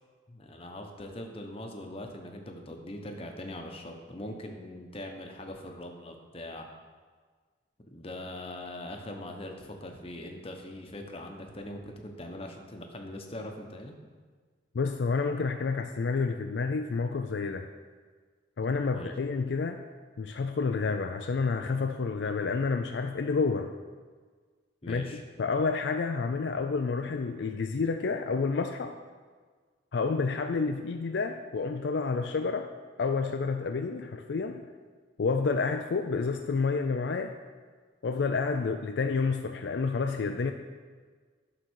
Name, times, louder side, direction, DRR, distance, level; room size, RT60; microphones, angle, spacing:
voice 1, 0.3-6.7 7.9-13.9 18.9-19.1 24.8-25.2, left 1 dB, 30° left, 3 dB, 0.9 m, -41 dB
voice 2, 14.7-17.7 18.6-19.8 20.2-23.7 24.9-25.1 25.4-28.9 29.9-32.7 33.0-34.7 35.2-37.4 38.0-40.5, left 4 dB, 65° left, 5 dB, 0.4 m, -29 dB
11.5 x 3.9 x 6.3 m, 1.5 s
head